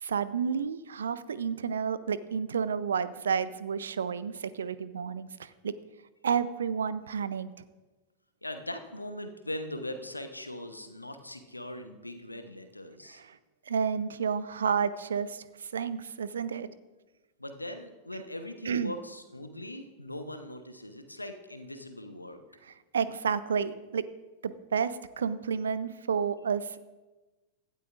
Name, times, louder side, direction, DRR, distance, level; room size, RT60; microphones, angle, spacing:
voice 1, 0.0-5.7 6.2-7.5 13.1-13.4 13.7-15.4 15.7-16.7 18.7-18.9 22.9-24.1 24.4-26.8, right 6 dB, 70° right, 16 dB, 0.5 m, -30 dB
voice 2, 8.4-13.2 17.4-22.4, left 1 dB, 85° left, 8 dB, 1.0 m, -40 dB
17.0 x 12.5 x 2.5 m, 1.2 s
figure-of-eight pair, 90°, 0 cm